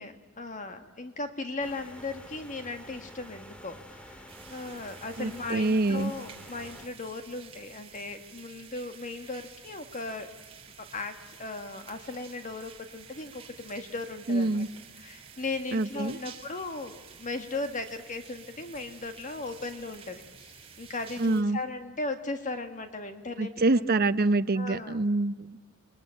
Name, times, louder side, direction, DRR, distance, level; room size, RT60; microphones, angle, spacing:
voice 1, 0.0-10.3 10.8-14.6 15.0-23.9 24.5-25.0, left 3 dB, 35° left, 8 dB, 1.5 m, -37 dB
sound 1, 1.6-6.9, equal, 5° left, 2.0 m, -48 dB
sound 2, 4.3-21.4, right 6 dB, 25° right, 3.2 m, -51 dB
voice 2, 5.2-6.1 14.3-14.7 15.7-16.2 21.2-21.6 23.4-25.5, right 2 dB, 45° right, 12 dB, 0.8 m, -26 dB
28.5 x 21.5 x 9.0 m, 1.3 s
head